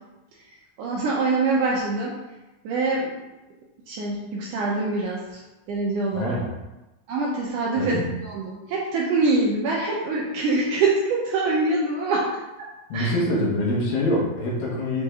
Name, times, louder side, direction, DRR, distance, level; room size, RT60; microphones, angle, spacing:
voice 1, 0.8-2.2 2.6-3.1 3.9-5.4 5.7-6.4 7.1-12.3 12.6-12.7 12.9-13.1, right 3 dB, 75° right, -4 dB, 2.0 m, -24 dB
voice 2, 6.1-6.5 7.7-8.1 12.9-15.0, left 1 dB, 70° left, -4 dB, 3.0 m, -25 dB
7.5 x 4.2 x 3.7 m, 1.0 s
omnidirectional pair, 4.5 m